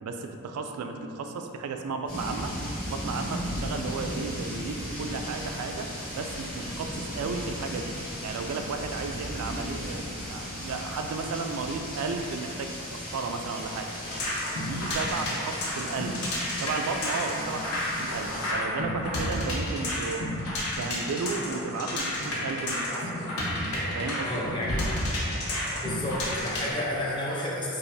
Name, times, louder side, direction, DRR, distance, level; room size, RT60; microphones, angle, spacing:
voice 1, 0.0-2.5 2.9-5.9 6.1-7.9 8.2-13.9 14.6-16.2 16.6-20.2 20.8-23.3 23.9-24.4, right 4 dB, 85° right, 5 dB, 0.3 m, -34 dB
sound 1, 2.1-18.5, equal, 40° left, 1.2 m, -36 dB
sound 2, 14.0-26.7, left 1 dB, 80° left, 0.8 m, -31 dB
voice 2, 24.2-25.0 25.5-27.8, left 1 dB, 20° left, -4 dB, 0.5 m, -32 dB
4.8 x 2.4 x 2.6 m, 2.5 s
head